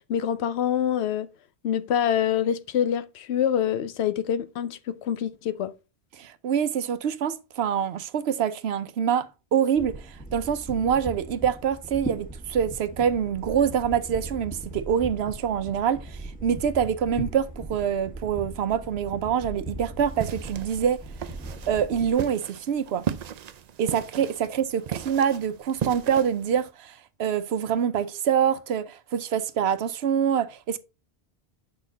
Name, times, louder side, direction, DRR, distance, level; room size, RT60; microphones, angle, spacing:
voice 1, 0.1-1.3 1.6-5.7, left 9 dB, 85° left, 0.9 m, -26 dB
voice 2, 6.2-21.0 21.7-23.0 23.8-30.8, right 8 dB, 80° right, 0.9 m, -25 dB
sound 1, 9.8-22.1, right 2 dB, 10° left, 1.7 m, -39 dB
sound 2, 20.0-26.7, right 8 dB, 55° right, 0.5 m, -36 dB
6.4 x 5.7 x 3.9 m
omnidirectional pair, 1.1 m